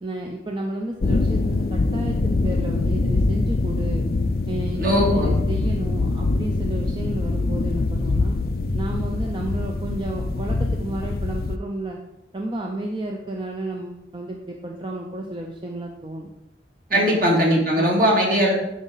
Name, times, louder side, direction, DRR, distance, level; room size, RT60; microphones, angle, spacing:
voice 1, 0.0-4.1 4.5-8.4 8.7-12.0 12.3-16.3 16.9-17.2 17.7-18.0, right 1 dB, 25° right, 1 dB, 0.6 m, -32 dB
sound 1, 1.0-11.6, left 3 dB, 55° left, 0.4 m, -23 dB
voice 2, 4.8-5.3 16.9-18.5, equal, 50° right, -2 dB, 2.2 m, -19 dB
9.4 x 5.0 x 3.9 m, 0.92 s
head